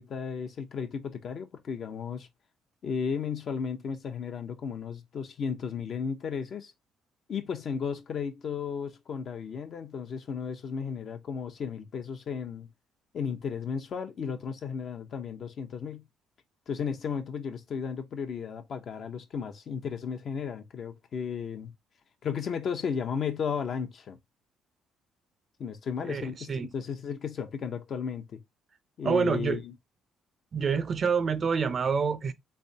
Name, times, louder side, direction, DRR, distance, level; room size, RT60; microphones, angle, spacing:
voice 1, 0.0-2.3 2.8-6.7 7.3-12.7 13.1-16.1 16.7-21.7 22.2-24.2 25.6-28.4 29.0-29.7, left 6 dB, 55° left, 0.8 m, -34 dB
voice 2, 26.0-26.7 29.0-29.6 30.5-32.3, right 6 dB, 45° right, 0.5 m, -27 dB
3.3 x 3.3 x 2.7 m
supercardioid pair, 75°, 0 cm